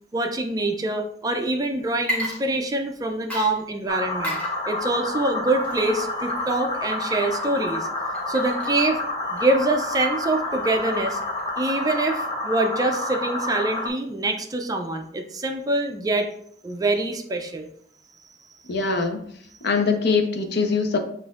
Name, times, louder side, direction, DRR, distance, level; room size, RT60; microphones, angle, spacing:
voice 1, 0.1-7.9 8.3-9.0 9.3-11.2 11.6-16.3 16.6-17.7, right 2 dB, 20° right, 4 dB, 0.4 m, -25 dB
Water / Liquid, 1.9-3.0 3.3-11.5, equal, 10° left, 1.3 m, -36 dB
sound 1, 3.9-13.9, left 2 dB, 25° left, 0.6 m, -29 dB
voice 2, 18.7-19.2 19.6-21.0, left 4 dB, 65° left, 5 dB, 0.7 m, -22 dB
7.5 x 2.5 x 2.4 m, 0.65 s
head